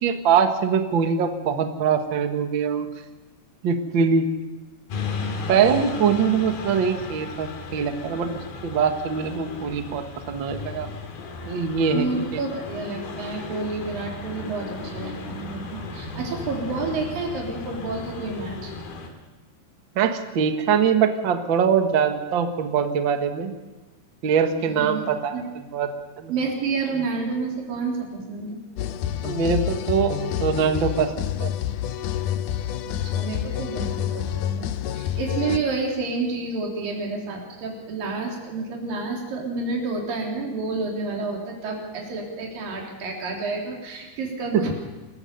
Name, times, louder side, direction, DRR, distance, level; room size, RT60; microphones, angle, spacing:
voice 1, 0.0-2.9 3.6-4.3 5.5-8.3 8.6-10.9 11.4-12.1 12.3-12.4 19.9-23.5 24.2-25.4 25.7-25.9 26.2-26.3 29.2-31.1 31.4-31.5 44.5-44.6, right 6 dB, 75° right, 6 dB, 1.1 m, -22 dB
sound 1, 4.9-19.1, left 3 dB, 65° left, 4.1 m, -35 dB
voice 2, 11.9-18.7 24.8-25.0 25.3-25.5 26.3-28.6 32.9-44.7, right 3 dB, 60° right, 0 dB, 5.3 m, -29 dB
sound 2, 28.8-35.6, left 10 dB, 90° left, 1.7 m, -28 dB
27.5 x 15.0 x 6.8 m, 1.2 s
omnidirectional pair, 4.7 m